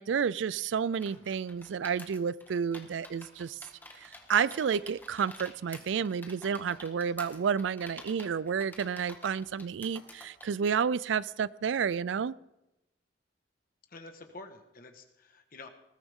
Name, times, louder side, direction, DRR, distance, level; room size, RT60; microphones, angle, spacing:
voice 1, 0.0-3.6 4.0-12.4, right 7 dB, 85° right, 21 dB, 0.4 m, -30 dB
sound 1, 0.9-10.5, left 2 dB, 10° left, 1.6 m, -49 dB
voice 2, 13.9-15.7, left 2 dB, 50° left, 6 dB, 1.5 m, -48 dB
20.0 x 13.5 x 3.7 m, 0.92 s
head